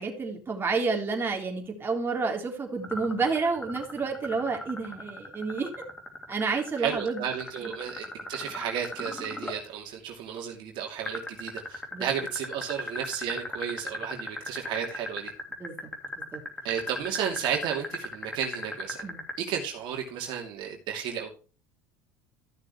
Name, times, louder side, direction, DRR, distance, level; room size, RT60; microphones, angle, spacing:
voice 1, 0.0-5.7 6.3-7.2 11.9-12.1 15.6-15.9 16.2-16.4 19.0-19.2, right 4 dB, 25° right, 3.6 m, -30 dB
sound 1, 2.8-9.6 11.1-19.3, left 1 dB, 10° left, 2.8 m, -36 dB
voice 2, 6.8-15.3 16.6-19.0 19.4-21.3, right 8 dB, 60° right, 2.8 m, -33 dB
14.5 x 6.6 x 3.2 m
supercardioid pair, 100°, 9 cm